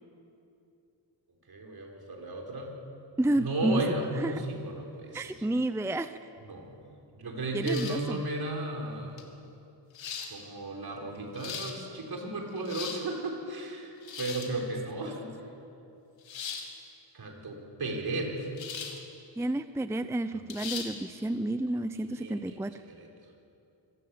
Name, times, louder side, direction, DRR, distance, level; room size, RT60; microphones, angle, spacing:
voice 1, 1.5-2.7 3.4-5.4 6.4-6.8 7.1-9.2 10.3-15.4 17.1-18.5 20.3-20.4 22.1-22.6 22.8-23.1, right 2 dB, 55° right, 1 dB, 4.7 m, -34 dB
voice 2, 3.2-3.8 4.2-4.4 5.1-6.2 7.5-8.2 19.4-22.7, right 1 dB, 5° right, 11 dB, 0.6 m, -30 dB
sound 1, 7.6-8.1 9.2-9.3 9.9-10.3 11.2-11.7 12.5-13.0 14.0-14.5 16.3-16.7 18.6-19.0 19.4-19.5 20.5-20.9, left 6 dB, 80° left, 2.8 m, -38 dB
25.5 x 16.0 x 8.6 m, 2.7 s
cardioid pair, 95°, 45 cm